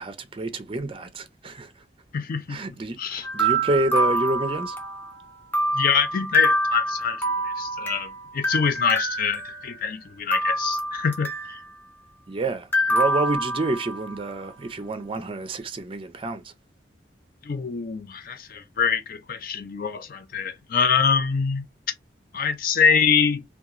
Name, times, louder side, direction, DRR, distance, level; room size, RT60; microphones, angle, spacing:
voice 1, 0.0-1.8 2.5-4.8 12.3-16.5, right 2 dB, 30° right, 0.4 m, -28 dB
voice 2, 2.1-2.6 3.0-3.2 5.7-11.6 17.4-21.6 22.3-23.4, left 6 dB, 50° left, 0.4 m, -24 dB
sound 1, 3.2-5.1 5.5-8.1 8.4-9.9 10.3-11.7 12.7-14.1, right 1 dB, 10° left, 0.7 m, -26 dB
2.8 x 2.3 x 2.4 m
head